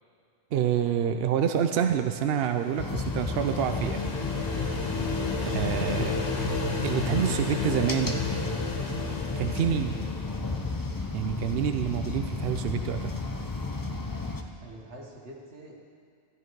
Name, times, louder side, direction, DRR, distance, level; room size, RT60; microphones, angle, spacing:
voice 1, 0.5-4.0 5.4-6.2 6.8-8.2 9.4-10.0 11.1-13.1, right 9 dB, 65° right, 7 dB, 0.7 m, -27 dB
sound 1, 2.0-10.8, left 3 dB, 85° left, 1.5 m, -33 dB
sound 2, 2.8-14.4, left 3 dB, 25° left, 0.6 m, -33 dB
voice 2, 14.6-15.8, right 2 dB, 90° right, -1 dB, 1.9 m, -46 dB
13.5 x 9.5 x 4.6 m, 2.2 s
omnidirectional pair, 1.1 m